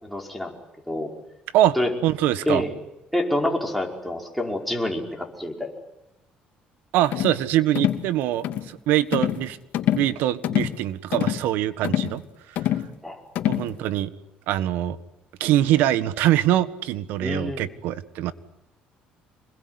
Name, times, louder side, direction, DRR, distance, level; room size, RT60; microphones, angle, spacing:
voice 1, 0.0-0.5 0.9-1.1 1.8-1.9 2.5-2.7 3.1-5.7 13.0-13.2 17.2-17.7, left 1 dB, ahead, 1 dB, 5.3 m, -27 dB
voice 2, 2.0-2.6 6.9-9.6 9.9-12.2 13.5-14.1 14.5-15.0 15.4-18.3, right 13 dB, 80° right, 14 dB, 1.6 m, -23 dB
sound 1, 7.1-7.4 7.7-8.1 8.4-8.7 9.1-9.5 9.7-10.1 10.4-10.8 11.1-11.4 11.8-12.2 12.6-12.9 13.3-13.7, left 12 dB, 70° left, 2.6 m, -25 dB
26.5 x 21.5 x 9.8 m, 0.90 s
cardioid pair, 125°, 3 cm